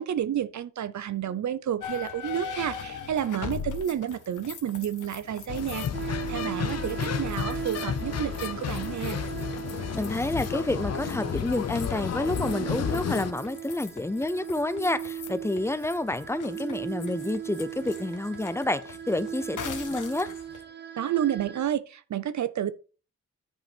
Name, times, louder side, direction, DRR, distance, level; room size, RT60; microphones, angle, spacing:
voice 1, 0.0-9.2 21.0-22.7, right 10 dB, 70° right, 0.6 m, -30 dB
sound 1, 1.8-20.6, left 7 dB, 85° left, 1.4 m, -42 dB
sound 2, 5.5-13.3, left 8 dB, 55° left, 0.6 m, -32 dB
sound 3, 5.9-21.6, right 10 dB, 35° right, 1.0 m, -38 dB
voice 2, 9.9-20.3, left 2 dB, 10° left, 0.5 m, -29 dB
10.5 x 5.4 x 4.4 m
wide cardioid pair, 180°, 30 cm